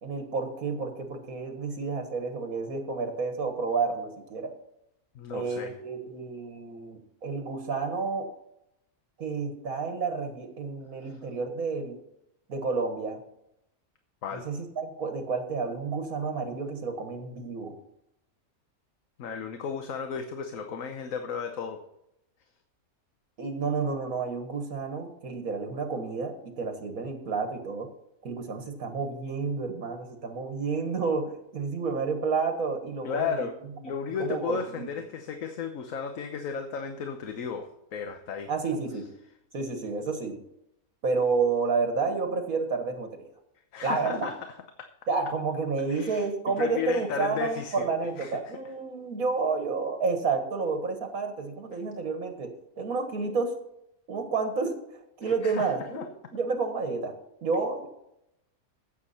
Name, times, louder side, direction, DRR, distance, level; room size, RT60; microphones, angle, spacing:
voice 1, 0.0-4.5 5.3-8.3 9.2-12.0 12.5-13.2 14.3-17.7 23.4-27.9 28.2-33.5 34.2-34.9 38.5-39.1 39.5-40.4 41.0-43.3 43.8-44.3 45.1-53.5 54.1-54.8 55.2-56.0 56.3-57.1 57.4-57.9, right 4 dB, 75° right, 6 dB, 2.1 m, -30 dB
voice 2, 5.1-5.8 11.0-11.2 14.2-14.5 19.2-21.8 33.0-33.6 33.8-38.5 43.7-44.3 44.8-44.9 45.9-47.9 48.2-48.4 55.3-56.1, left 6 dB, 65° left, 6 dB, 1.3 m, -34 dB
15.0 x 7.4 x 4.3 m, 0.81 s
omnidirectional pair, 1.5 m